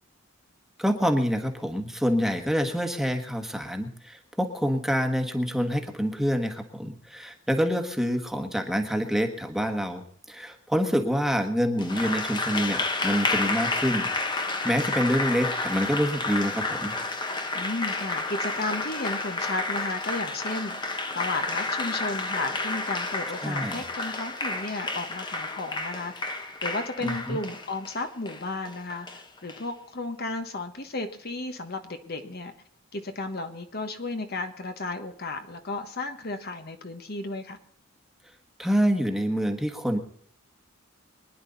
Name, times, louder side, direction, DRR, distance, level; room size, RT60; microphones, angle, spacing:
voice 1, 0.8-16.9 23.4-23.8 27.0-27.4 38.6-40.0, equal, ahead, 4 dB, 1.5 m, -27 dB
Applause, 11.8-29.6, left 3 dB, 20° left, 1.3 m, -30 dB
voice 2, 17.5-20.8 21.1-32.5 32.9-37.6, left 2 dB, 50° left, 6 dB, 1.4 m, -34 dB
24.5 x 10.5 x 4.1 m, 0.62 s
head